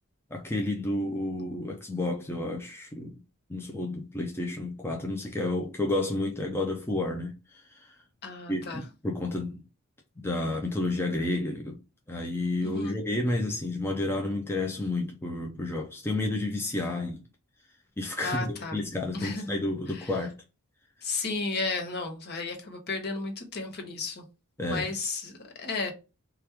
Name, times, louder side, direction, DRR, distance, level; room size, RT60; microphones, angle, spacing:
voice 1, 0.3-3.2 3.5-8.0 8.5-9.6 10.2-11.8 12.1-17.2 18.0-20.3 24.6-24.9, left 2 dB, 10° left, 0.4 m, -31 dB
voice 2, 8.2-8.8 12.6-13.0 18.2-18.8 19.1-19.5 19.9-20.1 21.0-24.2 24.6-25.9, left 3 dB, 50° left, 0.9 m, -33 dB
3.0 x 2.4 x 3.3 m
head